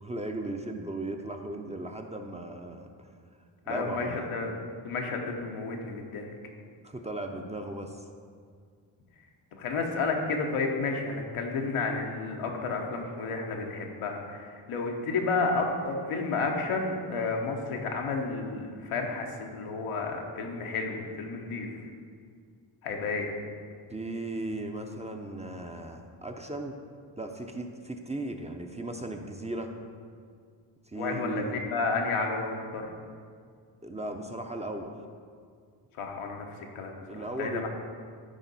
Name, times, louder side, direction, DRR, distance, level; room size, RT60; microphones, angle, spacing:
voice 1, 0.0-3.1 3.7-4.3 6.8-8.0 23.9-26.7 27.2-29.7 30.9-31.6 33.8-34.9 37.1-37.7, right 2 dB, 15° right, 4 dB, 0.5 m, -36 dB
voice 2, 3.7-4.5 4.8-6.3 9.5-21.7 22.8-23.4 30.9-32.9 35.9-37.7, left 4 dB, 90° left, 1 dB, 1.0 m, -31 dB
10.0 x 3.6 x 4.1 m, 2.1 s
cardioid pair, 60°, 50 cm